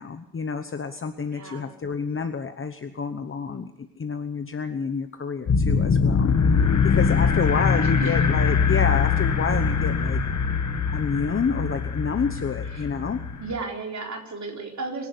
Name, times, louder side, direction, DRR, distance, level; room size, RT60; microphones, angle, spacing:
voice 1, 0.0-6.3 6.6-10.2 10.9-13.2, left 5 dB, 40° left, 8 dB, 1.1 m, -29 dB
voice 2, 1.3-1.7 5.4-5.7 7.2-8.3 12.7-12.9 13.4-15.1, right 3 dB, 55° right, 1 dB, 4.1 m, -35 dB
sound 1, 5.5-13.6, left 5 dB, 60° left, 1.9 m, -22 dB
25.0 x 11.0 x 9.6 m, 0.80 s
wide cardioid pair, 165°, 33 cm